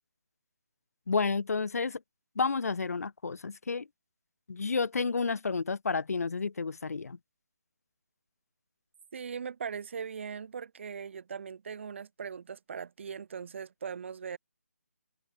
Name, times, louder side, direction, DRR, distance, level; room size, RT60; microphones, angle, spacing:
voice 1, 1.1-2.0 2.4-3.9 4.5-7.2, left 4 dB, 70° left, 0.7 m, -30 dB
voice 2, 9.1-14.4, right 6 dB, 50° right, 2.9 m, -40 dB
figure-of-eight pair, 155°, 9 cm